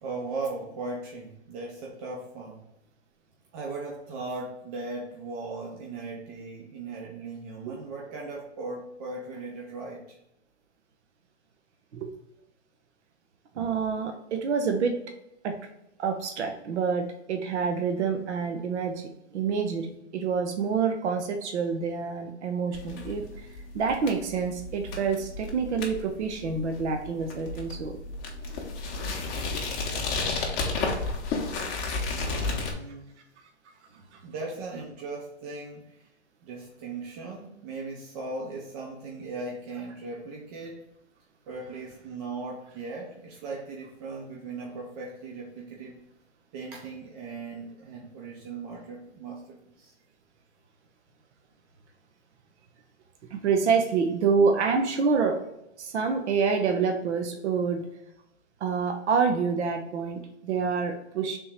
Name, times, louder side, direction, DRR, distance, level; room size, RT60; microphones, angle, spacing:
voice 1, 0.0-2.7 3.5-10.2 32.0-33.2 34.2-36.0 36.4-40.8 41.5-46.0 46.5-49.9, right 3 dB, 35° right, -2 dB, 0.6 m, -38 dB
voice 2, 13.6-15.0 15.4-15.6 16.0-23.5 23.7-28.0 53.3-55.4 55.8-57.9 58.6-61.4, right 5 dB, 75° right, 5 dB, 0.7 m, -27 dB
sound 1, 22.7-32.7, left 3 dB, 25° left, 0.7 m, -32 dB
3.6 x 2.8 x 4.3 m, 0.83 s
hypercardioid pair, 140°, 34 cm